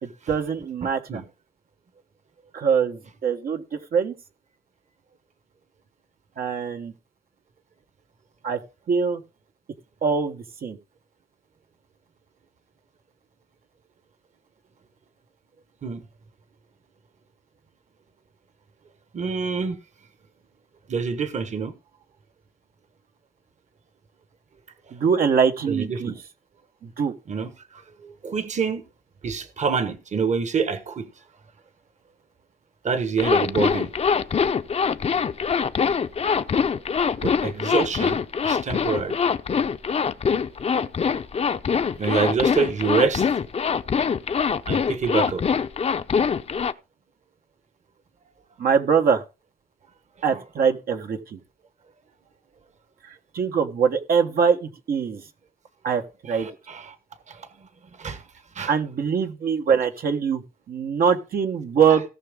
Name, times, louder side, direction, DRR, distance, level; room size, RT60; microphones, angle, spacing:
voice 1, 0.0-1.2 2.5-4.1 6.4-6.9 8.4-8.6 8.9-9.2 10.0-10.8 24.9-26.1 26.8-27.1 48.6-49.2 50.2-51.4 53.0-55.2 55.8-56.5 58.7-60.4 60.7-62.0, right 6 dB, 80° right, 1.4 m, -23 dB
voice 2, 0.8-1.2 15.8-16.0 19.1-19.8 20.9-21.7 25.7-26.1 27.3-28.8 29.2-31.1 32.8-33.9 37.2-39.2 42.0-43.3 44.7-45.4 50.3-50.4 56.3-57.0 57.3-57.5 58.0-58.2 58.5-58.7, right 5 dB, 50° right, 1.2 m, -26 dB
Zipper (clothing), 33.2-46.7, left 6 dB, 45° left, 0.6 m, -23 dB
17.5 x 6.0 x 3.7 m
wide cardioid pair, 110°, 15 cm